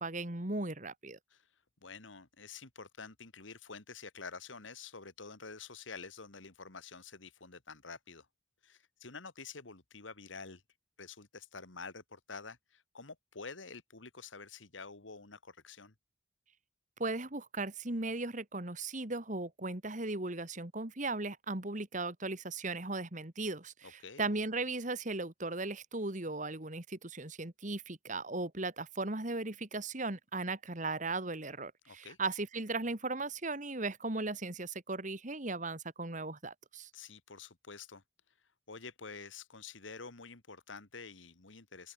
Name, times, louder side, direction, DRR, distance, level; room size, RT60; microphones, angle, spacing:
voice 1, 0.0-1.2 17.0-36.9, right 3 dB, 40° right, 2.1 m, -37 dB
voice 2, 1.8-8.3 8.6-10.6 11.0-15.9 23.8-24.3 31.8-32.2 36.9-38.0 38.7-41.9, left 4 dB, 85° left, 2.3 m, -48 dB
open air
head